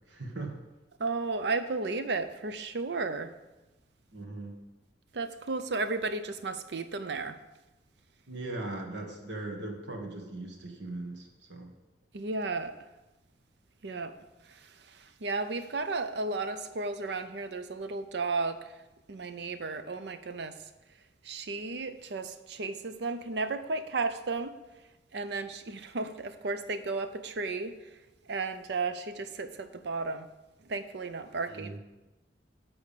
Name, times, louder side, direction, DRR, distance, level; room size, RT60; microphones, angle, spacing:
voice 1, 0.1-0.6 4.1-4.6 8.3-11.7 31.4-31.8, right 2 dB, 85° right, 2 dB, 1.5 m, -39 dB
voice 2, 1.0-3.3 5.1-7.4 12.1-12.8 13.8-14.2 14.5-18.8 19.1-20.6 21.2-24.5 25.1-27.8 28.3-30.3 30.7-31.8, right 3 dB, 70° right, 10 dB, 0.6 m, -34 dB
10.5 x 3.5 x 6.7 m, 1.1 s
head